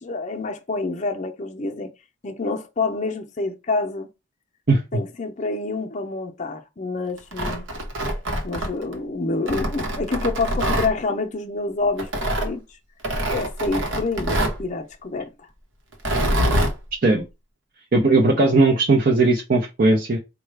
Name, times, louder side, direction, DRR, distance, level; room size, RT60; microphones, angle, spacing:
voice 1, 0.0-1.9 2.2-4.1 4.9-7.7 8.4-12.6 13.3-15.5, left 3 dB, 40° left, 0.6 m, -27 dB
Tearing, 7.2-9.0 9.5-10.9 12.0-12.5 13.0-14.6 15.9-16.7, right 1 dB, 80° right, 0.9 m, -24 dB
voice 2, 17.9-20.2, right 2 dB, 50° right, 0.6 m, -17 dB
4.6 x 2.2 x 3.3 m
head